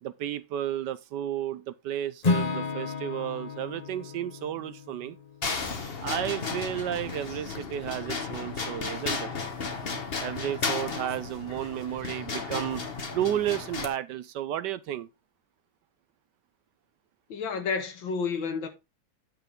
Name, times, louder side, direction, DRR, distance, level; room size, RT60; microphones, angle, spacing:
voice 1, 0.0-5.2 6.0-9.3 10.2-12.8 13.1-15.1, right 11 dB, 70° right, 1.1 m, -32 dB
Acoustic guitar / Strum, 2.2-6.3, left 4 dB, 55° left, 0.4 m, -32 dB
sound 1, 5.4-13.9, left 4 dB, 35° left, 1.2 m, -34 dB
voice 2, 17.3-18.7, left 5 dB, 80° left, 2.2 m, -30 dB
9.3 x 6.6 x 3.6 m
omnidirectional pair, 2.1 m